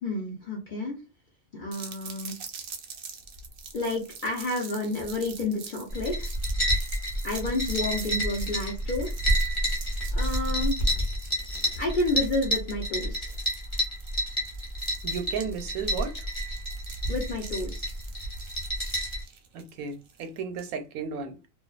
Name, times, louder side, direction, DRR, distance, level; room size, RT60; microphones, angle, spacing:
voice 1, 0.0-1.0 1.5-2.3 3.7-6.3 7.2-9.1 10.1-10.8 11.8-13.3 17.1-17.9, left 2 dB, 60° left, 0.5 m, -30 dB
sound 1, 1.7-20.7, right 5 dB, 60° right, 0.6 m, -45 dB
sound 2, 5.9-19.2, equal, 45° left, 0.9 m, -29 dB
voice 2, 15.0-16.1 19.5-21.5, right 6 dB, 85° right, 1.0 m, -34 dB
2.4 x 2.2 x 2.3 m
omnidirectional pair, 1.4 m